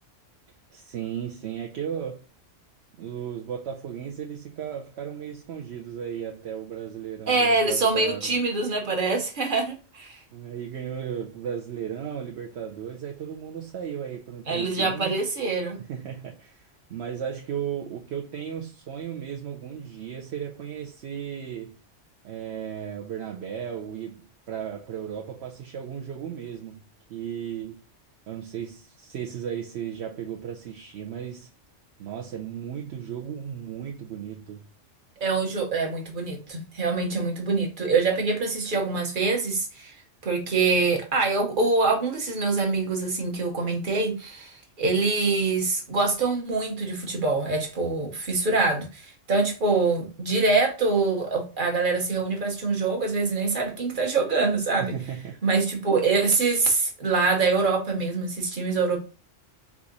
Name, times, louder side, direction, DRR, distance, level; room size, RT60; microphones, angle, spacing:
voice 1, 0.7-2.3 3.0-8.3 10.3-15.2 15.8-21.8 22.2-26.8 27.1-27.8 28.3-31.5 32.0-34.7 54.8-55.4, right 8 dB, 65° right, 0.9 m, -35 dB
voice 2, 7.3-10.2 14.5-15.8 35.2-39.9 40.2-54.9 55.4-59.0, right 3 dB, 45° right, 1.2 m, -25 dB
4.7 x 2.5 x 3.8 m
omnidirectional pair, 1.3 m